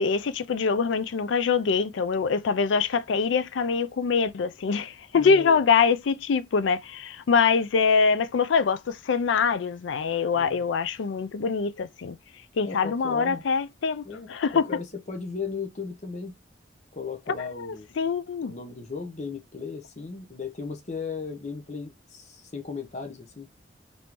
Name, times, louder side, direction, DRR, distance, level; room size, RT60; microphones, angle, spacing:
voice 1, 0.0-12.2 12.6-14.0 14.3-14.7 17.5-18.5, left 5 dB, 80° left, 0.4 m, -24 dB
voice 2, 5.2-5.6 10.3-10.6 12.6-13.4 14.0-16.3 16.9-17.9 18.4-23.5, left 5 dB, 40° left, 0.6 m, -36 dB
3.5 x 2.7 x 2.9 m
head